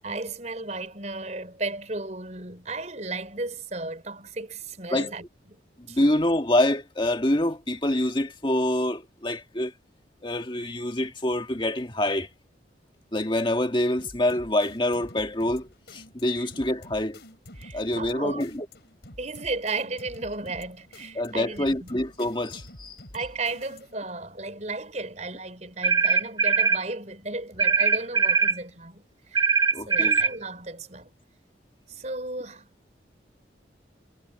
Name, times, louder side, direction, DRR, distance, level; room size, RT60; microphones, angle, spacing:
voice 1, 0.0-5.6 5.9-6.0 16.4-16.5 17.6-18.5 19.2-21.9 23.1-29.0 29.3-29.5 29.9-31.2 31.9-32.7, right 3 dB, 40° right, 5.3 m, -34 dB
voice 2, 5.8-9.7 10.2-12.3 13.1-17.2 17.7-18.7 21.2-23.0 29.7-30.2, left 1 dB, 25° left, 1.7 m, -26 dB
sound 1, 14.0-24.1, left 1 dB, 60° left, 6.6 m, -48 dB
sound 2, 25.8-26.8 27.6-28.6 29.4-30.3, right 5 dB, 20° right, 1.3 m, -21 dB
head